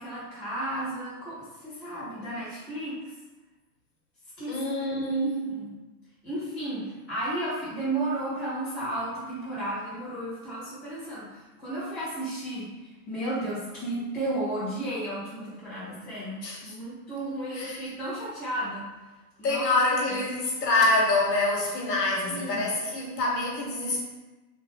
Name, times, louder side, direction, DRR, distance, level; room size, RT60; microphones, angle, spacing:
voice 1, 0.0-1.4 1.6-3.0 4.4-4.6 5.2-5.7 6.2-18.9 19.4-19.7 20.1-20.2 22.3-22.6, right 1 dB, 10° left, -19 dB, 0.6 m, -33 dB
voice 2, 4.5-5.4 16.4-16.7 17.5-17.9 19.4-24.0, left 2 dB, 85° left, -2 dB, 1.3 m, -26 dB
3.5 x 2.5 x 3.5 m, 1.2 s
hypercardioid pair, 175°, 48 cm